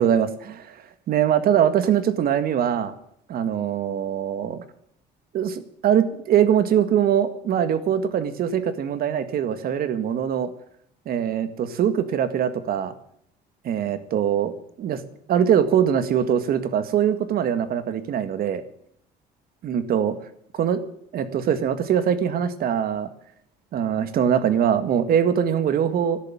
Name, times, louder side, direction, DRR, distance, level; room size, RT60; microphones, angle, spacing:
voice 1, 0.0-3.0 3.3-4.6 5.3-10.5 11.1-12.9 13.6-14.5 14.8-15.0 15.3-18.6 19.6-20.2 20.5-20.8 21.1-23.1 23.7-26.2, right 9 dB, 60° right, 11 dB, 1.9 m, -22 dB
13.0 x 11.0 x 9.1 m, 0.69 s
cardioid pair, 110°, 17 cm